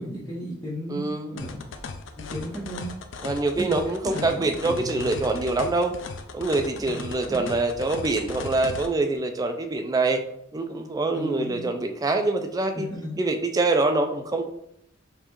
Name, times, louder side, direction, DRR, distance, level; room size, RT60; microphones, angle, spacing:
voice 1, 0.0-1.0 1.3-1.6 2.2-2.9 3.6-3.7 4.0-5.3 6.8-7.5 11.1-11.6 12.7-13.2, equal, 15° left, -8 dB, 0.9 m, -34 dB
voice 2, 0.9-1.4 3.2-6.0 6.3-10.2 10.5-12.9 13.2-14.5, right 2 dB, 20° right, 6 dB, 0.3 m, -25 dB
sound 1, 1.4-8.9, left 4 dB, 70° left, 0.4 m, -37 dB
5.4 x 2.4 x 3.0 m, 0.78 s
head